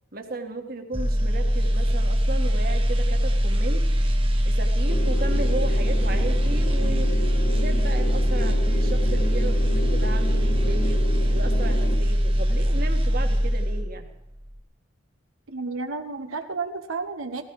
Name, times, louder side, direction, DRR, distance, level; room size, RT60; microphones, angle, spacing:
voice 1, 0.1-3.8 4.4-7.1 7.4-11.1 11.3-14.0, right 2 dB, 45° right, 4 dB, 1.6 m, -35 dB
sound 1, 0.9-14.1 14.4-14.6, equal, 25° right, 0.9 m, -22 dB
sound 2, 4.9-12.0, left 1 dB, 35° left, 1.6 m, -33 dB
voice 2, 15.5-17.4, right 4 dB, 90° right, 6 dB, 1.1 m, -31 dB
17.0 x 14.5 x 4.8 m, 0.89 s
head